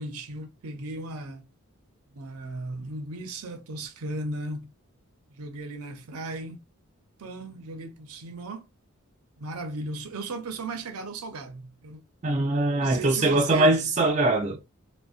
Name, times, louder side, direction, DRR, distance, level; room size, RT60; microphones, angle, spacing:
voice 1, 0.0-1.5 2.1-4.7 5.3-6.6 7.2-8.7 9.4-12.0 12.8-13.7, right 2 dB, 85° right, 0.5 m, -36 dB
voice 2, 12.2-14.6, right 2 dB, 30° right, 0.3 m, -22 dB
2.5 x 2.1 x 2.3 m
head